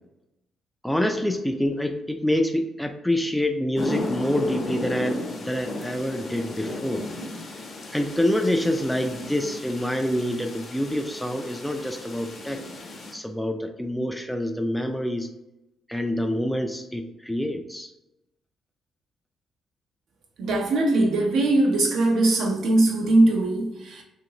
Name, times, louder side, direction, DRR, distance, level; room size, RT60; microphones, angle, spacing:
voice 1, 0.8-7.0 7.9-12.6 13.1-15.3 15.9-17.9, left 1 dB, 5° left, 0.3 m, -26 dB
sound 1, 3.8-13.1, left 2 dB, 45° left, 0.6 m, -35 dB
voice 2, 20.4-24.0, right 2 dB, 75° right, 0.7 m, -21 dB
2.7 x 2.6 x 2.9 m
cardioid pair, 90°, 0 cm